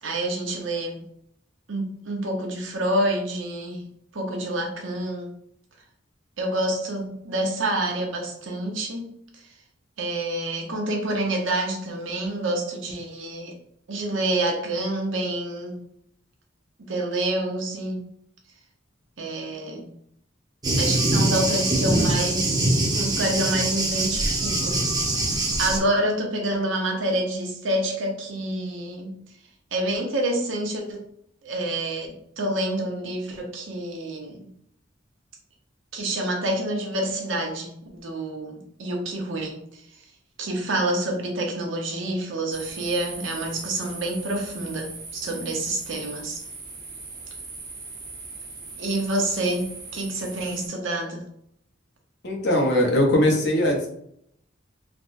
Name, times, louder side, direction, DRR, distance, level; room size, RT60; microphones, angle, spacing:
voice 1, 0.0-1.0 1.7-3.9 4.1-5.3 6.4-9.2 10.0-13.5 13.9-15.8 16.8-18.0 19.2-19.9 20.8-24.8 25.2-29.2 29.7-31.0 31.4-32.1 32.4-34.5 35.9-39.8 40.4-44.9 45.2-46.4 48.8-51.3, right 1 dB, 80° right, 2 dB, 0.7 m, -28 dB
Thunder, 20.6-25.8, right 1 dB, 20° right, 0.6 m, -23 dB
sound 1, 42.5-50.7, right 3 dB, 50° right, 0.8 m, -39 dB
voice 2, 52.2-53.9, left 1 dB, 60° left, 1 dB, 0.8 m, -20 dB
3.4 x 2.1 x 2.6 m, 0.70 s
head